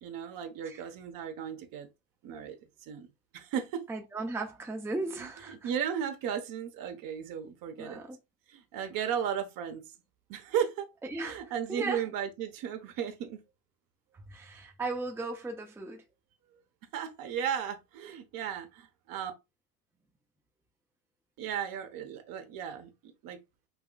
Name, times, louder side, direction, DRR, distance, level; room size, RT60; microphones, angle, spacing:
voice 1, 0.0-1.9 2.2-2.6 2.9-3.1 3.3-3.8 5.2-5.3 5.6-8.0 8.5-9.8 10.3-10.9 11.2-13.4 16.9-19.3 21.4-22.9 23.2-23.4, right 8 dB, 50° right, 1.0 m, -35 dB
voice 2, 3.9-5.7 7.8-8.2 11.0-11.4 11.7-12.0 14.1-16.0, right 3 dB, 5° right, 0.6 m, -36 dB
5.7 x 2.3 x 2.3 m
supercardioid pair, 95°, 43 cm